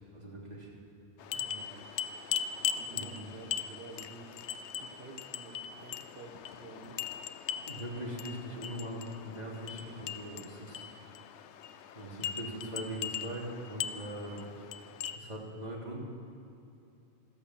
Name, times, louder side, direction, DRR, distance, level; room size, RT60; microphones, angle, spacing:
voice 1, 0.1-0.7 2.9-3.3 7.7-10.9 11.9-14.4 15.1-16.0, right 1 dB, 40° right, -4 dB, 3.3 m, -41 dB
sound 1, 1.2-15.2, left 8 dB, 85° left, 0.9 m, -40 dB
voice 2, 1.3-1.9 2.6-4.3 4.8-7.0 13.9-14.2, right 4 dB, 65° right, 1 dB, 1.4 m, -50 dB
14.0 x 14.0 x 7.4 m, 2.7 s
omnidirectional pair, 1.1 m